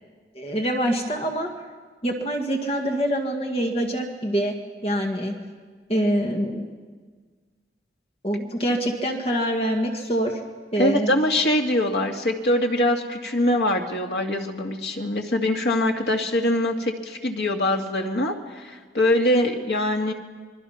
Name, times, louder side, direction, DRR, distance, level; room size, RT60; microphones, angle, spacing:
voice 1, 0.3-1.5 2.0-4.6 4.8-5.4 5.9-6.7 8.2-10.4 10.7-11.1, equal, 35° left, 2 dB, 1.8 m, -25 dB
voice 2, 10.8-20.1, left 1 dB, 75° left, 2 dB, 2.2 m, -23 dB
26.0 x 23.0 x 5.8 m, 1.5 s
head